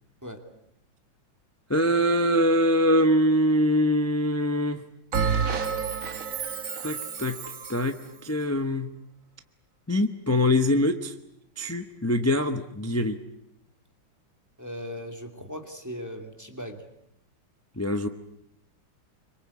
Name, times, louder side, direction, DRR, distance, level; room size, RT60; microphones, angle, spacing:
voice 1, 1.7-4.8 6.8-7.4 7.7-7.9 8.2-8.9 9.9-11.1 11.6-13.2 17.8-18.1, equal, 10° left, 8 dB, 0.7 m, -23 dB
Bell, 5.1-7.9, right 6 dB, 50° right, 1.6 m, -29 dB
voice 2, 14.6-16.8, equal, 10° right, 4 dB, 2.5 m, -38 dB
26.5 x 24.5 x 8.5 m, 0.78 s
omnidirectional pair, 2.1 m